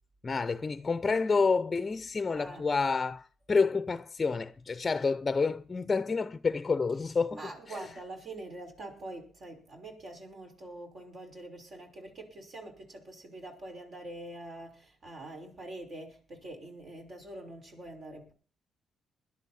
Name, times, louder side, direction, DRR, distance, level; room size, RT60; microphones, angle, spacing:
voice 1, 0.2-7.4, left 4 dB, 30° left, 0.7 m, -29 dB
voice 2, 2.3-2.7 7.3-18.3, right 2 dB, 50° right, 5.8 m, -45 dB
21.0 x 11.5 x 4.3 m
cardioid pair, 90°, 0 cm